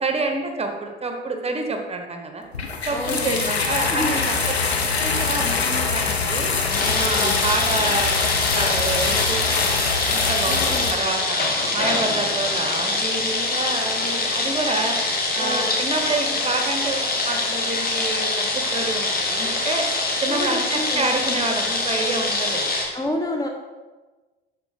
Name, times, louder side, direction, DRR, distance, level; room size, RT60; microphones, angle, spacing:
voice 1, 0.0-2.4 2.9-6.6 6.9-8.1 8.5-11.4 11.7-15.0 15.3-19.9 20.2-22.7, right 3 dB, 20° right, 4 dB, 1.3 m, -28 dB
sound 1, 2.5-10.9, left 4 dB, 85° left, 1.0 m, -23 dB
voice 2, 2.9-3.6 3.9-4.2 6.6-7.4 10.5-11.1 15.4-15.8 20.3-21.1 22.9-23.5, left 1 dB, 10° left, 1 dB, 1.0 m, -29 dB
sound 2, 6.7-22.9, left 2 dB, 30° left, 2.1 m, -24 dB
12.0 x 4.5 x 5.1 m, 1.3 s
figure-of-eight pair, 65°, 31 cm